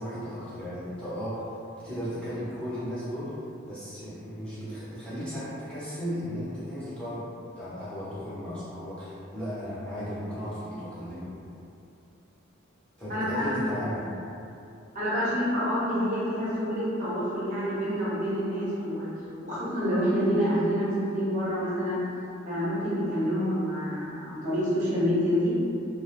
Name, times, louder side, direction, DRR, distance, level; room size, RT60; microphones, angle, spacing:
voice 1, 0.0-3.3 3.6-7.3 7.6-11.5 13.0-14.1, equal, 5° left, -13 dB, 0.5 m, -35 dB
voice 2, 13.1-13.5 14.9-19.1 19.4-22.0 22.4-25.5, equal, 40° right, -9 dB, 0.6 m, -27 dB
2.3 x 2.0 x 2.9 m, 2.6 s
head